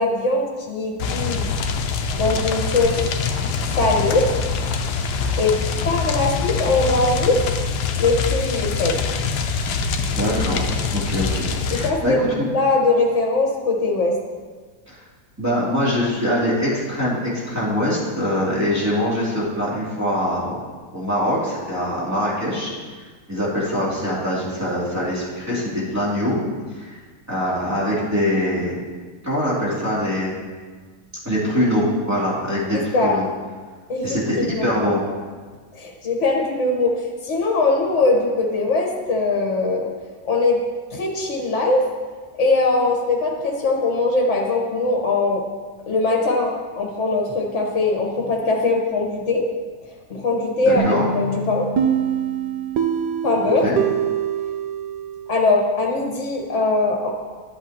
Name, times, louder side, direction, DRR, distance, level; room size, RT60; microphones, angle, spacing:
voice 1, 0.0-1.5 2.1-3.0 3.8-4.3 5.4-5.5 5.8-7.4 8.0-8.9 11.7-14.1 32.7-33.2 33.9-34.2 34.5-34.6 35.7-39.9 40.2-40.6 40.9-41.8 42.4-45.4 45.9-49.4 50.1-51.7 53.2-53.6 55.3-57.1, left 3 dB, 50° left, 0 dB, 1.7 m, -21 dB
sound 1, 1.0-11.9, left 4 dB, 90° left, 1.3 m, -24 dB
voice 2, 10.1-12.5 14.9-15.0 15.4-20.6 20.9-22.7 23.3-26.4 26.7-27.0 27.3-28.8 29.2-30.4 31.2-33.3 34.0-35.0 50.7-51.1 53.6-53.8, equal, 10° right, -8 dB, 2.7 m, -23 dB
sound 2, 50.8-55.5, right 7 dB, 90° right, 1.2 m, -24 dB
12.5 x 8.1 x 3.0 m, 1.5 s
omnidirectional pair, 1.7 m